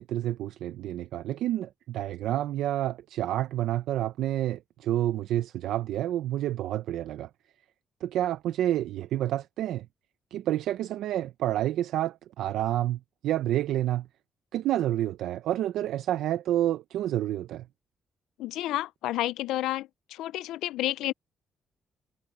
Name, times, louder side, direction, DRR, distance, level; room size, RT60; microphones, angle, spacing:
voice 1, 0.0-7.3 8.0-9.9 10.3-14.1 14.5-17.7, right 13 dB, 85° right, 0.6 m, -29 dB
voice 2, 18.4-21.1, left 15 dB, 90° left, 0.4 m, -30 dB
cardioid pair, 90°, 0 cm